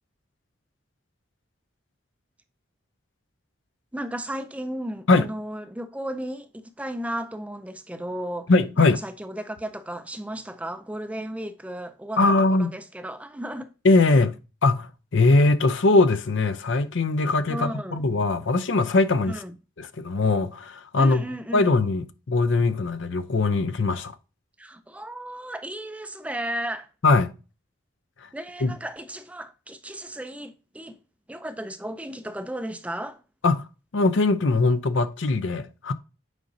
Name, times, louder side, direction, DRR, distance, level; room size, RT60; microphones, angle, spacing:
voice 1, 3.9-8.5 8.8-12.2 12.5-13.7 17.5-18.0 19.3-19.5 21.0-21.7 24.6-26.9 28.3-31.0 31.3-33.2, right 1 dB, 5° right, 0.4 m, -34 dB
voice 2, 8.5-9.0 12.2-12.7 13.8-14.4 14.6-19.4 19.8-21.2 21.5-24.1 27.0-27.3 28.6-28.7 33.4-33.7 33.9-35.9, left 3 dB, 70° left, 0.6 m, -21 dB
8.2 x 5.1 x 2.7 m
head